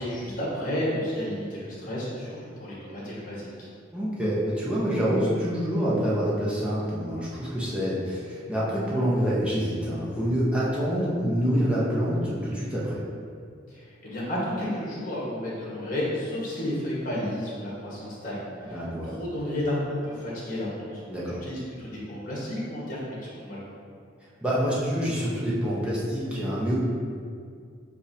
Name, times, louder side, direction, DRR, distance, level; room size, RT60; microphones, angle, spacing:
voice 1, 0.0-3.7 13.7-21.0 21.3-23.6, left 1 dB, 45° left, -6 dB, 1.4 m, -32 dB
voice 2, 3.9-13.0 18.7-19.1 21.1-21.4 24.4-26.7, equal, 5° right, -8 dB, 0.9 m, -26 dB
6.8 x 2.7 x 2.7 m, 2.2 s
head